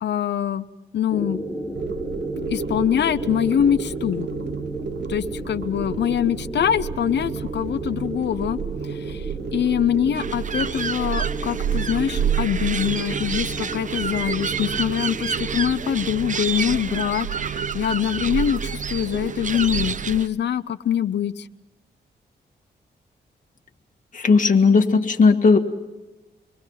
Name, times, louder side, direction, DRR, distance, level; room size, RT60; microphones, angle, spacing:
voice 1, 0.0-0.6 0.9-1.4 2.5-4.3 5.1-8.6 8.9-9.2 9.5-21.5, left 9 dB, 75° left, 13 dB, 0.7 m, -24 dB
sound 1, 1.1-16.1, right 1 dB, 5° left, 5.4 m, -34 dB
sound 2, 1.7-20.3, right 8 dB, 75° right, 0.7 m, -31 dB
sound 3, 10.1-20.3, right 6 dB, 45° right, 0.8 m, -30 dB
voice 2, 24.1-25.6, left 4 dB, 45° left, 4 dB, 2.0 m, -16 dB
26.0 x 22.5 x 5.8 m, 1.1 s
cardioid pair, 85°, 18 cm